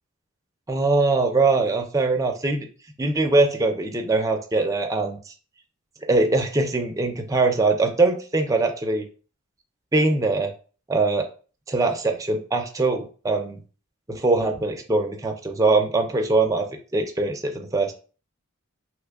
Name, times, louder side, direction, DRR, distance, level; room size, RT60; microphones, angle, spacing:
voice 1, 0.7-2.7 3.0-5.2 6.1-9.1 9.9-10.5 10.9-11.3 11.7-13.6 14.1-16.7 16.9-17.9, right 3 dB, 15° right, 4 dB, 0.4 m, -22 dB
3.0 x 2.2 x 3.4 m, 0.38 s
head